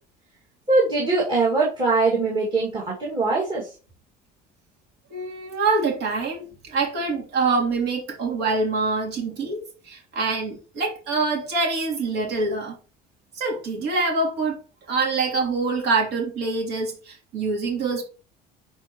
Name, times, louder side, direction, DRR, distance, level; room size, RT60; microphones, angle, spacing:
voice 1, 0.7-3.7, right 3 dB, 30° right, 2.1 m, -22 dB
voice 2, 5.1-12.7 13.3-14.6 14.9-18.0, right 3 dB, 70° right, 3.1 m, -25 dB
11.0 x 4.2 x 3.0 m
cardioid pair, 150°, 17 cm